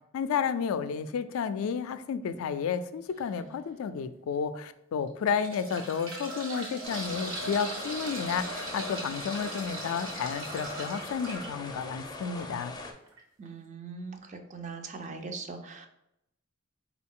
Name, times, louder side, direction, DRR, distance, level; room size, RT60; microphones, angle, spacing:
voice 1, 0.1-12.7, left 6 dB, 80° left, 11 dB, 0.3 m, -31 dB
sound 1, 3.1-3.4 4.0-4.1 5.1-11.5 13.1-13.2 13.5-13.6, right 1 dB, 70° right, 1.2 m, -39 dB
sound 2, 6.8-12.9, left 2 dB, 20° left, 0.4 m, -42 dB
voice 2, 13.4-15.9, right 4 dB, 35° right, 5 dB, 0.4 m, -41 dB
4.5 x 2.3 x 3.6 m, 0.80 s
head